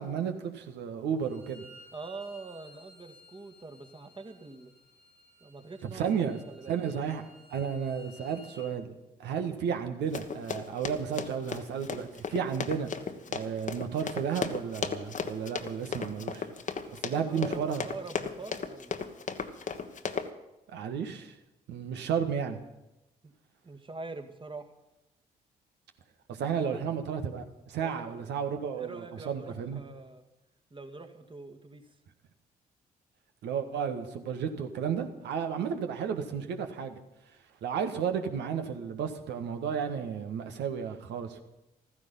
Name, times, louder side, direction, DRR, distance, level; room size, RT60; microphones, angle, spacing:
voice 1, 0.0-1.7 5.9-6.4 6.7-7.2 7.5-12.9 13.3-16.5 17.0-17.8 20.7-21.3 21.7-22.6 26.3-29.8 33.4-37.0 37.6-41.4, right 7 dB, 60° right, 6 dB, 1.6 m, -33 dB
Bowed string instrument, 1.2-8.6, equal, 90° left, 3.5 m, -56 dB
voice 2, 1.9-4.7 5.4-6.1 6.5-6.8 17.1-19.1 23.2-23.3 23.6-24.7 26.4-26.8 27.8-28.3 28.7-30.2 30.7-32.0, right 3 dB, 25° right, 6 dB, 2.0 m, -44 dB
Run, 10.1-20.3, left 5 dB, 40° left, 1.3 m, -36 dB
15.0 x 14.5 x 5.6 m, 0.96 s
figure-of-eight pair, 40°, 20 cm